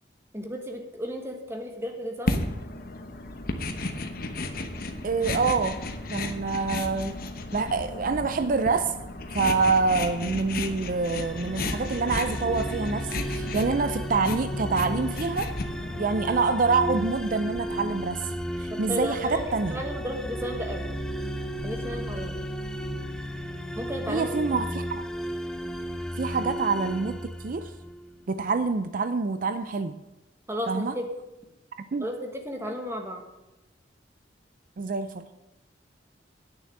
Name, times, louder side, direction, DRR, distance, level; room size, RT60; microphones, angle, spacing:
voice 1, 0.3-2.4 18.7-20.9 21.6-22.4 23.7-24.3 30.5-31.0 32.0-33.2, equal, 15° right, 1.4 m, -33 dB
sound 1, 2.3-16.1, left 2 dB, 50° left, 1.0 m, -34 dB
sound 2, 3.8-22.0, left 1 dB, 90° left, 1.2 m, -46 dB
voice 2, 5.0-5.8 6.1-7.2 7.5-8.9 9.3-15.5 16.0-18.3 18.6-19.8 24.1-25.0 26.2-27.7 28.3-30.0 30.7-30.9 31.9-32.0 34.8-35.3, right 4 dB, 45° right, 0.4 m, -26 dB
sound 3, 11.0-28.1, equal, 5° left, 0.6 m, -34 dB
9.0 x 6.8 x 8.4 m
head